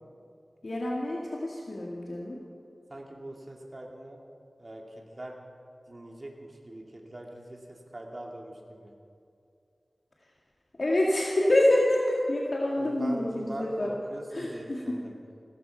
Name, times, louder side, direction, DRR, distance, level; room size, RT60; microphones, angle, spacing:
voice 1, 0.6-2.4 10.8-13.9 14.3-14.9, left 1 dB, 60° left, -3 dB, 2.2 m, -27 dB
voice 2, 2.9-4.2 4.6-5.4 5.9-8.9 12.8-15.1, right 1 dB, 40° right, 0 dB, 2.5 m, -42 dB
16.5 x 14.0 x 5.8 m, 2.4 s
wide cardioid pair, 55°, 0 cm